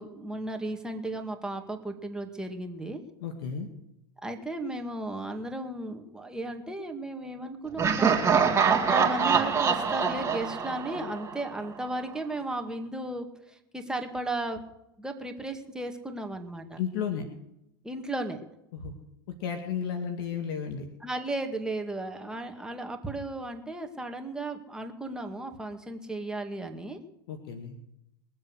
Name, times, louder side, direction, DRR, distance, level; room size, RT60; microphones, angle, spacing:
voice 1, 0.0-3.0 4.2-8.5 8.7-14.6 15.0-16.8 17.8-18.4 21.0-27.0, right 2 dB, 5° right, 3 dB, 2.2 m, -35 dB
voice 2, 3.2-3.7 16.8-17.2 18.7-18.9 19.4-20.9 27.3-27.8, left 7 dB, 65° left, 5 dB, 2.1 m, -33 dB
Laughter, 7.8-11.7, right 6 dB, 20° right, 2.3 m, -25 dB
22.0 x 7.7 x 6.5 m, 0.82 s
hypercardioid pair, 95°, 13 cm